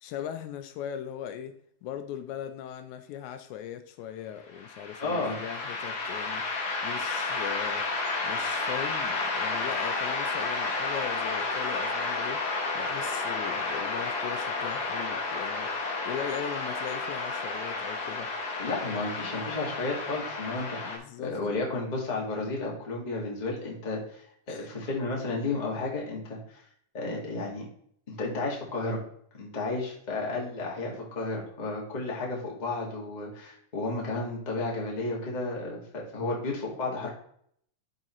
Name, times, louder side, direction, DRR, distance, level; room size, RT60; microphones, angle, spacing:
voice 1, 0.0-6.5 6.8-7.9 8.2-12.4 12.8-15.7 16.0-18.3 18.9-19.4 20.8-21.7 24.5-24.7 37.0-37.1, left 10 dB, 80° left, 1.9 m, -39 dB
sound 1, 4.6-21.0, left 3 dB, 60° left, 1.0 m, -31 dB
voice 2, 5.0-5.4 18.6-26.6 26.9-27.7 28.1-29.0 29.3-37.1, left 2 dB, 25° left, 1.0 m, -32 dB
11.0 x 4.0 x 3.0 m
omnidirectional pair, 3.5 m